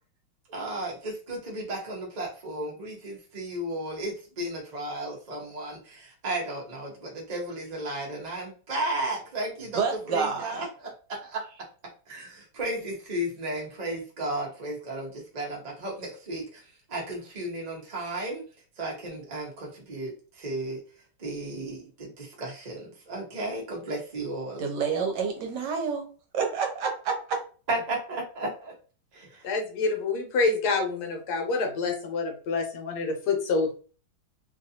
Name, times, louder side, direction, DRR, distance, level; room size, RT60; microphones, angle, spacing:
voice 1, 0.5-11.6 12.1-18.4 18.8-20.8 21.2-24.7 27.7-28.7 29.1-29.5, right 1 dB, 50° right, -2 dB, 0.5 m, -34 dB
voice 2, 9.7-10.6 24.6-26.0 26.3-27.4, right 5 dB, 65° right, 3 dB, 1.2 m, -28 dB
voice 3, 29.4-33.7, left 3 dB, 60° left, 3 dB, 1.3 m, -27 dB
3.1 x 2.6 x 2.7 m, 0.37 s
omnidirectional pair, 2.2 m